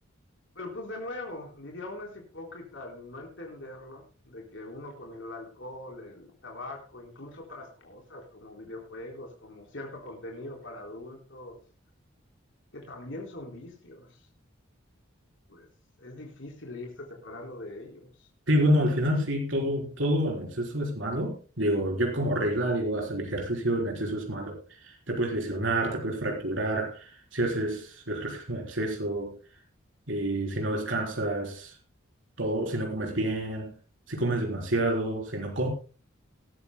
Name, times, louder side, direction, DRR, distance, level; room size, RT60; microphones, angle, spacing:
voice 1, 0.6-11.6 12.7-14.2 15.5-15.7 16.0-18.1, left 2 dB, 65° left, 3.9 m, -42 dB
voice 2, 18.5-29.4 30.1-31.7 32.4-33.7 34.1-35.7, right 1 dB, 70° right, 3.9 m, -28 dB
19.5 x 13.0 x 2.2 m
head